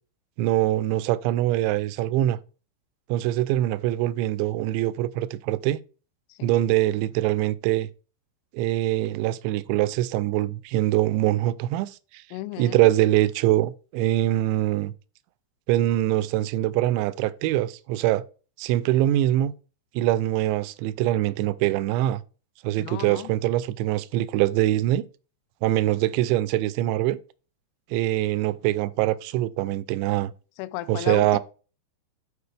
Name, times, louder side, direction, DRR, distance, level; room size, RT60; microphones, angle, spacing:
voice 1, 0.4-2.4 3.1-5.8 6.4-7.9 8.5-12.2 12.6-14.9 15.7-18.2 18.6-19.5 20.0-22.2 22.6-25.0 25.6-27.2 27.9-30.3 30.9-31.4, right 14 dB, 85° right, 2.7 m, -23 dB
voice 2, 12.3-12.9 22.8-23.3 30.6-31.4, left 16 dB, 85° left, 2.9 m, -34 dB
12.0 x 4.6 x 3.3 m
omnidirectional pair, 5.4 m